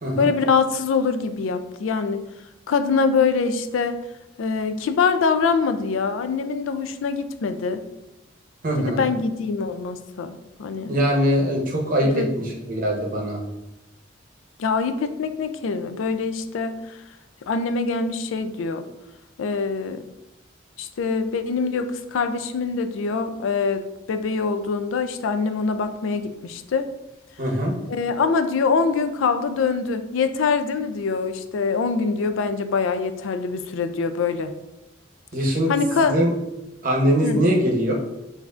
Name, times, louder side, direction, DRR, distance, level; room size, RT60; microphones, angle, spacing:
voice 1, 0.2-2.2 2.7-4.0 4.4-7.8 8.8-11.0 12.0-12.3 14.6-16.8 17.5-18.8 19.4-20.0 20.8-26.9 27.9-34.5 35.7-36.2 37.2-37.4, left 5 dB, 85° left, 9 dB, 0.4 m, -24 dB
voice 2, 8.6-9.0 10.9-13.4 27.4-27.7 35.3-35.7 36.1-36.3 36.8-37.9, equal, 45° right, -1 dB, 0.9 m, -22 dB
6.9 x 2.6 x 2.4 m, 0.95 s
head